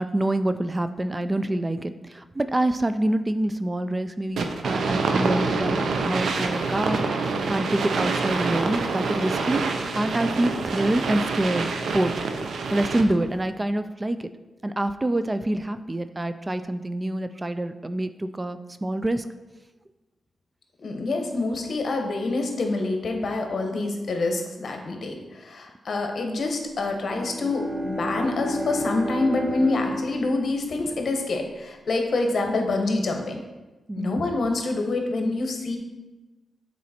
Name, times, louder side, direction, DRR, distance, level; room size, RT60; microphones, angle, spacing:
voice 1, 0.0-12.1 12.7-14.3 14.6-19.3 33.9-34.2, right 1 dB, 20° right, 11 dB, 0.3 m, -26 dB
sound 1, 4.4-13.3, right 4 dB, 80° right, 0.6 m, -26 dB
voice 2, 20.8-33.4 34.0-35.8, left 2 dB, 60° left, 3 dB, 1.1 m, -26 dB
Bowed string instrument, 26.8-31.5, equal, 45° right, 1.6 m, -33 dB
7.4 x 4.1 x 4.3 m, 1.2 s
cardioid pair, 80°, 0 cm